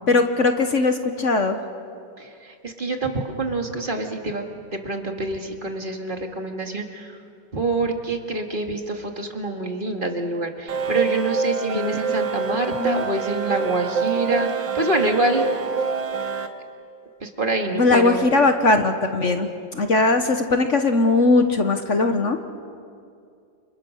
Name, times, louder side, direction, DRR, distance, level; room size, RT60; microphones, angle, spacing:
voice 1, 0.1-1.6 11.7-12.0 12.7-13.1 17.7-22.4, left 3 dB, 45° left, 6 dB, 1.4 m, -20 dB
voice 2, 2.2-4.4 4.7-7.1 7.5-15.5 17.2-18.3, right 2 dB, 30° right, 3 dB, 2.1 m, -26 dB
sound 1, 10.7-16.5, right 5 dB, 85° right, 2.0 m, -26 dB
29.5 x 27.5 x 6.5 m, 2.4 s
omnidirectional pair, 2.0 m